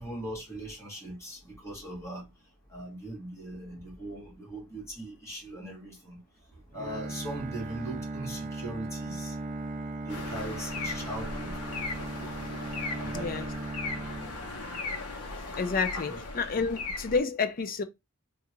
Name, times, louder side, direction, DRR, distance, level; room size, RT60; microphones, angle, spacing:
voice 1, 0.0-2.2 2.7-6.2 6.7-9.3 10.0-11.5 13.0-13.3 16.1-16.2, right 1 dB, 15° left, 1.6 m, -40 dB
Bowed string instrument, 6.7-15.0, right 2 dB, 35° right, 0.4 m, -38 dB
sound 1, 10.1-17.2, left 3 dB, 85° left, 0.7 m, -37 dB
voice 2, 13.1-13.5 15.6-17.8, left 4 dB, 40° left, 0.5 m, -29 dB
3.6 x 2.3 x 3.0 m
head